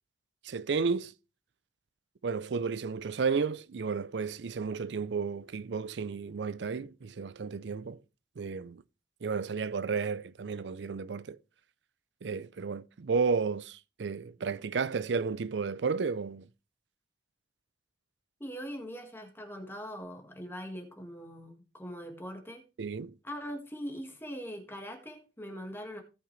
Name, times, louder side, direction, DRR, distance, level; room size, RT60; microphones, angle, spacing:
voice 1, 0.4-1.1 2.2-8.0 8.4-8.8 9.2-11.4 12.2-16.5 22.8-23.1, right 5 dB, 75° right, 0.5 m, -32 dB
voice 2, 18.4-22.6 23.2-26.0, equal, 15° left, 1.7 m, -41 dB
17.0 x 5.9 x 3.2 m
head